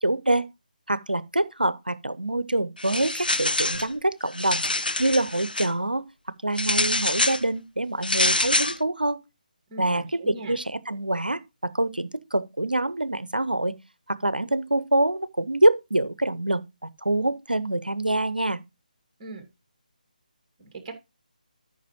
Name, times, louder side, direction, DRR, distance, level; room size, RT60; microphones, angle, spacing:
voice 1, 0.0-0.5 0.9-4.6 5.0-6.1 6.4-9.2 9.8-13.7 14.1-18.6, right 1 dB, 85° right, 0.7 m, -25 dB
sound 1, 2.8-3.9 4.3-5.7 6.6-7.4 8.0-8.8, left 2 dB, 85° left, 0.6 m, -25 dB
voice 2, 9.7-10.6 19.2-19.5 20.6-20.9, right 3 dB, 25° right, 2.2 m, -39 dB
13.5 x 5.8 x 3.1 m
figure-of-eight pair, 150°, 5 cm